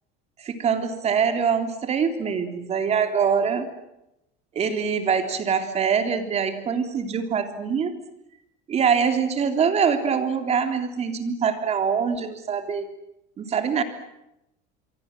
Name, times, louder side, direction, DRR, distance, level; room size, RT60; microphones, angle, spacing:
voice 1, 0.4-3.7 4.6-7.9 8.7-12.9 13.4-13.8, right 6 dB, 30° right, 7 dB, 3.5 m, -24 dB
27.5 x 23.5 x 7.8 m, 0.88 s
cardioid pair, 140°, 21 cm